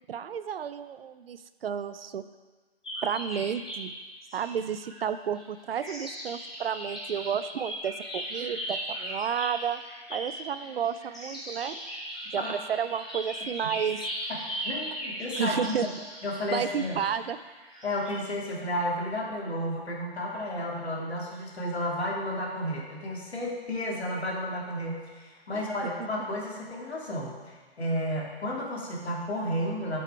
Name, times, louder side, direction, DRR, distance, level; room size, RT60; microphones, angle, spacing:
voice 1, 0.1-2.2 3.0-3.9 4.3-9.8 10.1-11.8 12.3-14.1 15.4-15.9 16.5-17.4 25.5-25.6 26.0-26.1, right 8 dB, 65° right, 13 dB, 0.5 m, -31 dB
sound 1, 2.8-3.8 4.3-5.4 5.7-18.2, equal, 5° left, 0.3 m, -38 dB
voice 2, 14.6-15.9 16.2-17.0 17.8-30.0, left 1 dB, 80° left, -2 dB, 2.5 m, -32 dB
8.8 x 6.2 x 4.6 m, 1.3 s
hypercardioid pair, 140°, 32 cm